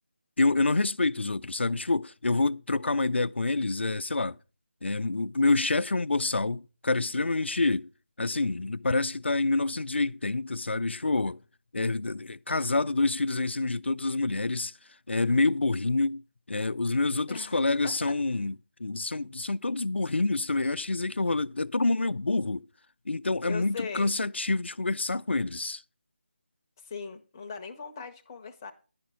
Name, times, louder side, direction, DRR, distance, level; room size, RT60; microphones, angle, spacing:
voice 1, 0.4-4.4 4.8-7.9 8.2-11.4 11.7-14.7 15.1-16.2 16.5-18.5 18.8-22.7 23.1-25.8, left 3 dB, 70° left, 0.3 m, -27 dB
voice 2, 17.3-18.2 23.5-24.1 26.8-28.7, left 5 dB, 20° left, 0.6 m, -39 dB
10.5 x 5.1 x 5.7 m
figure-of-eight pair, 160°, 6 cm